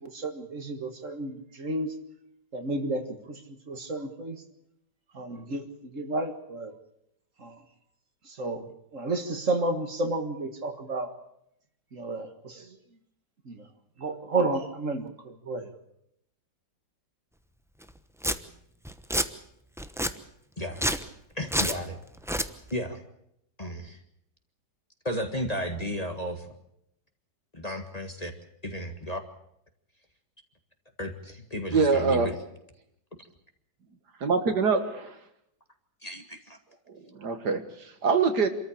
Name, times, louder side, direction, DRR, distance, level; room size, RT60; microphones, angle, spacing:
voice 1, 0.0-2.0 2.5-4.4 5.1-6.7 7.4-7.6 8.3-11.1 11.9-12.8 13.5-13.6 14.0-15.7, right 2 dB, 45° right, 7 dB, 2.0 m, -32 dB
Domestic sounds home sounds, 17.8-17.9 18.2-18.4 18.8-19.3 19.8-20.1 20.7-21.0 21.5-21.8 22.2-22.5, equal, 5° right, 0.4 m, -27 dB
voice 2, 20.6-20.9 21.3-22.0 22.7-23.0 23.6-24.0 25.0-26.5 27.5-28.3 28.6-29.2 31.0-32.3 36.0-36.6, equal, 20° left, 4 dB, 1.7 m, -33 dB
voice 3, 31.7-32.3 34.2-35.1 37.2-37.6 38.0-38.5, right 4 dB, 65° right, 8 dB, 2.1 m, -23 dB
26.5 x 14.0 x 8.6 m, 0.77 s
omnidirectional pair, 2.0 m